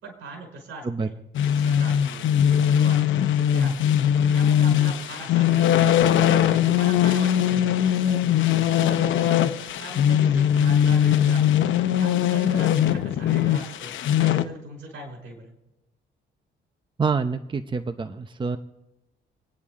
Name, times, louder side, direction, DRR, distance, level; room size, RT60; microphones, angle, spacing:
voice 1, 0.0-4.0 4.3-6.1 6.5-9.4 9.8-11.7 12.0-13.9 14.2-15.6, right 2 dB, 75° right, 2 dB, 5.3 m, -41 dB
sound 1, 1.3-14.4, left 10 dB, 75° left, 0.8 m, -20 dB
voice 2, 17.0-18.6, right 5 dB, 25° right, 9 dB, 0.8 m, -26 dB
28.0 x 10.0 x 3.7 m, 0.94 s
cardioid pair, 90°, 20 cm